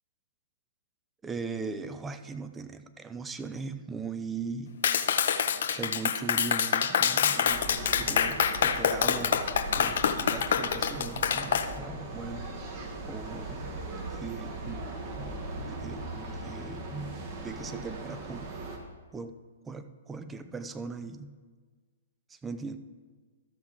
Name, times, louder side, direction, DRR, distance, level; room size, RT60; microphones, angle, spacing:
voice 1, 1.2-4.7 5.7-9.5 9.8-12.6 13.1-13.8 14.1-18.5 19.1-19.4 19.7-21.3 22.3-22.8, right 4 dB, 10° right, 10 dB, 0.5 m, -39 dB
Clapping, 4.8-11.7, left 8 dB, 60° left, 0.6 m, -26 dB
sound 1, 7.5-18.8, right 2 dB, 40° right, 1.5 m, -39 dB
13.0 x 7.1 x 3.7 m, 1.5 s
figure-of-eight pair, 120°, 0 cm